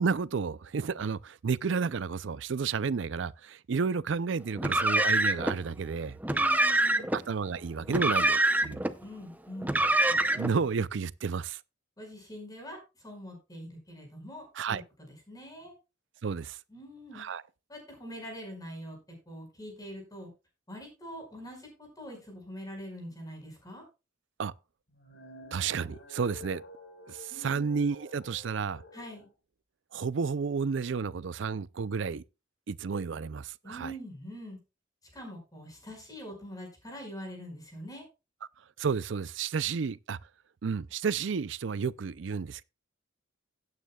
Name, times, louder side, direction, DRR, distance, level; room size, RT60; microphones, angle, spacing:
voice 1, 0.0-6.2 7.1-8.8 10.3-11.6 14.5-14.8 16.2-16.6 17.1-17.4 24.4-24.5 25.5-26.6 27.1-28.8 29.9-32.2 32.7-33.9 38.8-40.2 40.6-42.6, right 5 dB, 70° right, 0.5 m, -31 dB
Car, 4.6-5.6 6.2-7.2 7.9-8.9 9.6-10.6, right 2 dB, 10° right, 0.6 m, -25 dB
voice 2, 6.2-7.1 9.0-9.8 12.0-15.7 16.7-17.3 17.7-19.0 19.3-20.3 20.7-23.8 27.3-27.7 28.9-29.3 33.6-34.6 35.1-38.1, equal, 20° left, 5.2 m, -44 dB
sound 1, 24.9-29.3, left 2 dB, 80° left, 3.7 m, -50 dB
16.5 x 9.2 x 2.3 m
head